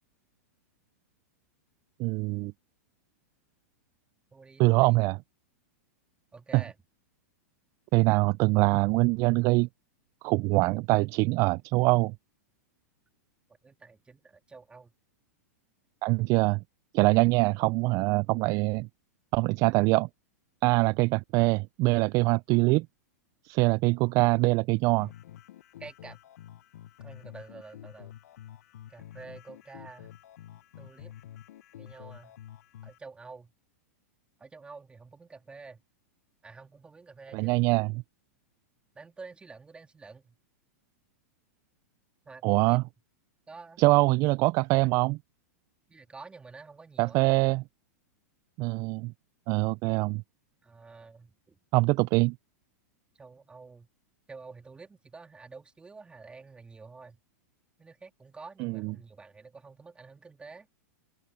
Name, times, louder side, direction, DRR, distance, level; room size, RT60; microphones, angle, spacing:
voice 1, 2.0-2.5 4.6-5.2 6.5-6.6 7.9-9.7 10.2-12.1 16.0-16.6 16.9-18.9 19.3-20.1 20.6-22.9 23.4-25.1 37.3-38.0 42.4-42.8 43.8-45.2 47.0-47.6 48.6-49.1 49.5-50.2 51.7-52.4 58.6-58.9, right 24 dB, 40° right, 0.4 m, -24 dB
voice 2, 4.3-5.0 6.3-6.8 13.6-14.9 25.8-26.2 27.0-28.1 28.9-30.1 30.8-31.1 31.8-32.4 32.8-33.5 34.4-35.8 36.4-37.5 38.9-40.4 42.2-42.8 43.5-43.8 45.9-47.4 50.6-51.6 53.1-53.9 54.3-57.2 57.8-60.7, right 4 dB, 10° right, 2.8 m, -49 dB
sound 1, 25.0-33.0, left 11 dB, 70° left, 1.0 m, -49 dB
open air
hypercardioid pair, 125°, 9 cm